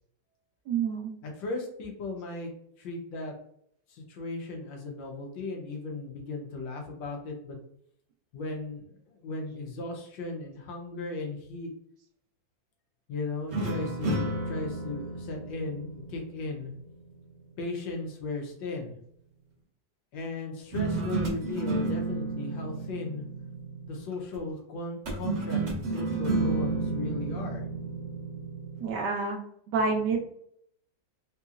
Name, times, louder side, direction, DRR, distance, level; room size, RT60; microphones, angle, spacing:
voice 1, 0.7-1.2 28.8-29.4 29.7-30.3, right 4 dB, 75° right, 2 dB, 1.1 m, -28 dB
voice 2, 1.2-2.5 2.8-3.3 3.9-7.6 8.3-11.7 13.1-16.7 17.6-19.0 20.1-23.3 23.9-27.7, left 3 dB, 75° left, 1 dB, 1.6 m, -36 dB
sound 1, 13.5-16.9 20.7-24.1 25.1-28.9, right 3 dB, 50° right, 0.9 m, -32 dB
3.8 x 2.8 x 2.4 m, 0.68 s
omnidirectional pair, 2.1 m